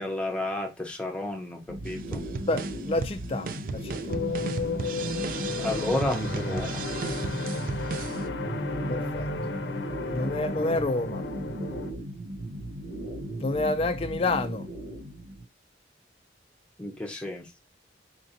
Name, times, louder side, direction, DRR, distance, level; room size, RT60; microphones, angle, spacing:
voice 1, 0.0-2.2 5.6-6.8 16.8-17.5, left 1 dB, 5° left, 0.8 m, -31 dB
sound 1, 1.7-15.5, right 1 dB, 90° right, 0.7 m, -37 dB
sound 2, 1.8-8.2, right 5 dB, 50° right, 0.3 m, -36 dB
voice 2, 2.5-4.2 8.9-9.3 10.1-11.3 13.4-14.7, left 2 dB, 30° left, 0.3 m, -29 dB
sound 3, 4.1-11.9, left 3 dB, 70° left, 0.6 m, -33 dB
4.2 x 2.6 x 2.6 m
head